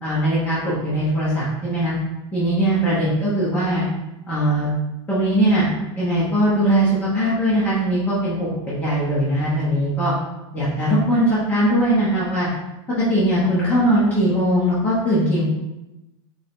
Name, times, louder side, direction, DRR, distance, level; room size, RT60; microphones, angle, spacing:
voice 1, 0.0-1.9 2.3-3.8 4.3-4.7 5.1-5.7 6.0-10.1 10.5-12.5 13.0-15.4, right 1 dB, 10° left, -9 dB, 0.8 m, -20 dB
3.9 x 3.4 x 3.5 m, 0.98 s
supercardioid pair, 180°, 15 cm